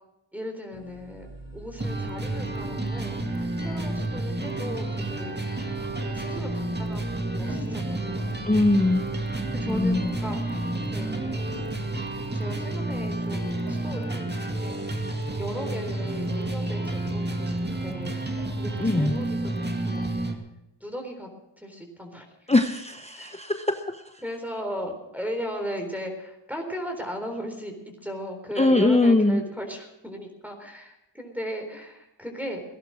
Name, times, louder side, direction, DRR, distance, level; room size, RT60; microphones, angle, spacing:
voice 1, 0.3-3.2 3.6-5.6 6.0-8.6 9.5-11.5 12.3-15.0 15.4-20.2 20.8-21.3 21.6-22.5 23.1-23.4 24.2-32.6, equal, 5° right, 2 dB, 3.9 m, -37 dB
sound 1, 0.7-12.5, right 2 dB, 45° right, 7.8 m, -46 dB
sound 2, 1.8-20.3, right 2 dB, 20° right, 2.2 m, -30 dB
sound 3, 5.8-6.1 6.8-7.6 8.0-8.3 8.6-10.8 11.5-14.4 14.7-19.7, left 1 dB, 65° right, 4.4 m, -49 dB
voice 2, 8.5-9.0 9.7-10.1 18.8-19.2 22.5-24.0 28.6-29.4, left 2 dB, 15° left, 7 dB, 0.9 m, -21 dB
17.5 x 11.0 x 6.3 m, 0.87 s
cardioid pair, 45°, 48 cm